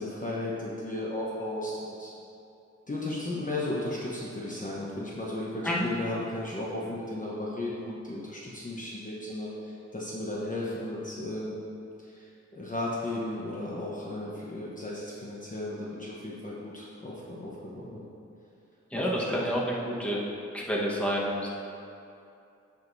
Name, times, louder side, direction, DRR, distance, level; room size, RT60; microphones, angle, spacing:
voice 1, 0.0-2.1 2.9-11.6 12.1-12.3 12.5-18.0 18.9-19.4, left 1 dB, 25° left, -6 dB, 1.0 m, -35 dB
voice 2, 18.9-20.2 20.5-21.5, equal, 5° left, -5 dB, 1.3 m, -29 dB
15.0 x 5.1 x 2.7 m, 2.7 s
wide cardioid pair, 120°, 29 cm